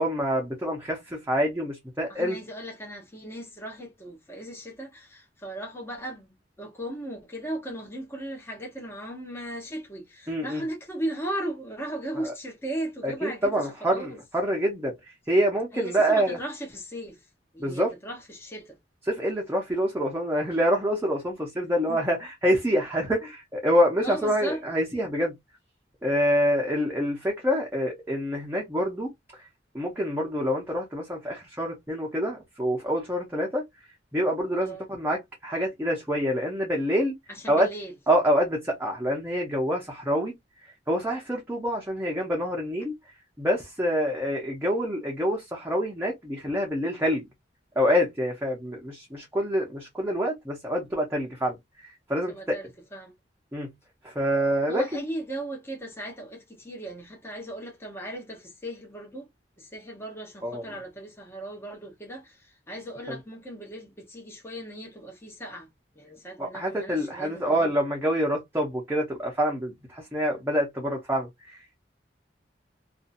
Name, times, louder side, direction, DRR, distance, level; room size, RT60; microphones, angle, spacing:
voice 1, 0.0-2.4 10.3-10.6 12.2-12.3 13.0-14.9 15.3-16.4 17.6-17.9 19.1-25.3 26.0-29.1 29.7-33.6 34.1-37.1 37.5-37.7 38.1-40.3 40.9-42.9 43.4-47.3 47.8-52.6 53.5-53.7 54.0-54.8 60.4-60.6 66.4-71.6, equal, 15° right, 0.7 m, -26 dB
voice 2, 2.1-6.3 6.6-14.2 15.7-17.2 17.5-18.8 21.6-22.0 24.0-24.6 34.6-34.8 37.3-37.9 52.3-53.1 54.7-59.3 59.6-65.7 65.9-67.7, right 1 dB, 15° left, 0.9 m, -37 dB
2.7 x 2.4 x 2.5 m
head